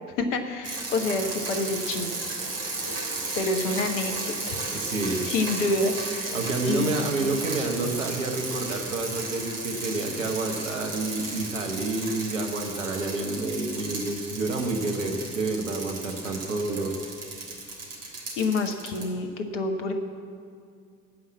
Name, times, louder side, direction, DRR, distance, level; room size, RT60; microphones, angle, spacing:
voice 1, 0.2-2.3 3.4-4.6 5.2-6.4 6.7-7.0 18.4-19.9, left 2 dB, 70° left, 6 dB, 1.3 m, -28 dB
sound 1, 0.6-19.1, right 3 dB, 40° right, 3.3 m, -34 dB
voice 2, 4.7-5.3 6.3-17.0, right 2 dB, 80° right, 3 dB, 1.3 m, -29 dB
16.0 x 5.7 x 8.5 m, 2.3 s
figure-of-eight pair, 55°, 38 cm